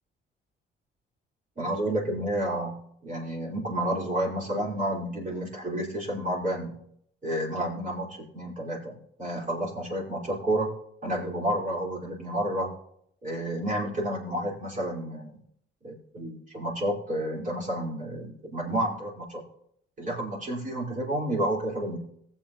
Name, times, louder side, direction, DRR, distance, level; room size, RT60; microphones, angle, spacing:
voice 1, 1.6-6.8 7.2-10.7 11.0-12.7 13.2-15.4 15.8-19.4 20.0-22.0, right 1 dB, 40° right, -3 dB, 4.5 m, -30 dB
19.0 x 7.8 x 3.0 m, 0.70 s
cardioid pair, 90°, 20 cm